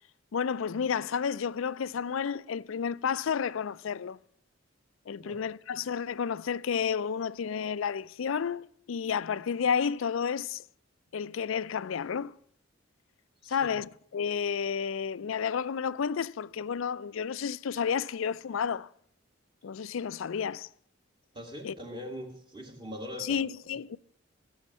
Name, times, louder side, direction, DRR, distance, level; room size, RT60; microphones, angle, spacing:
voice 1, 0.3-4.2 5.1-10.6 11.1-12.3 13.5-18.9 19.6-20.7 21.6-21.8 23.2-24.0, left 7 dB, 75° left, 0.4 m, -31 dB
voice 2, 13.4-13.7 21.3-23.5, equal, 25° right, 2.2 m, -41 dB
17.5 x 6.5 x 7.1 m
head